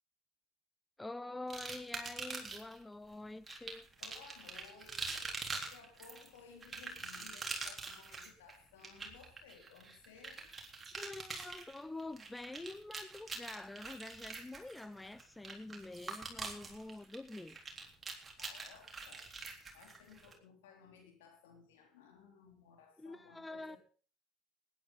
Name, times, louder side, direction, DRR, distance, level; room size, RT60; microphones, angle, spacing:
voice 1, 1.0-3.9 11.0-17.6 23.0-23.8, left 2 dB, 10° left, 0.6 m, -46 dB
sound 1, 1.5-2.8 3.5-20.3, right 3 dB, 25° right, 3.6 m, -45 dB
voice 2, 4.0-10.5 18.4-19.3 19.7-23.8, left 6 dB, 80° left, 3.7 m, -59 dB
19.5 x 10.0 x 4.2 m
hypercardioid pair, 70°, 0 cm